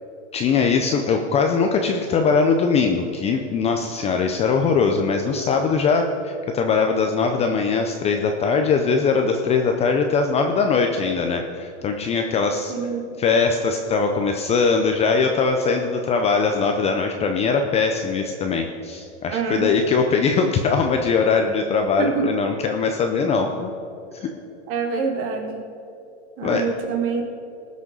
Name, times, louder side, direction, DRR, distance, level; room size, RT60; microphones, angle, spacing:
voice 1, 0.3-12.9 13.2-23.7 26.4-26.7, left 5 dB, 20° left, 4 dB, 0.5 m, -21 dB
voice 2, 12.7-13.0 19.3-19.7 22.0-22.2 24.7-25.6 26.4-27.2, right 5 dB, 40° right, 3 dB, 2.1 m, -25 dB
18.5 x 6.3 x 5.3 m, 2.7 s
supercardioid pair, 150°, 36 cm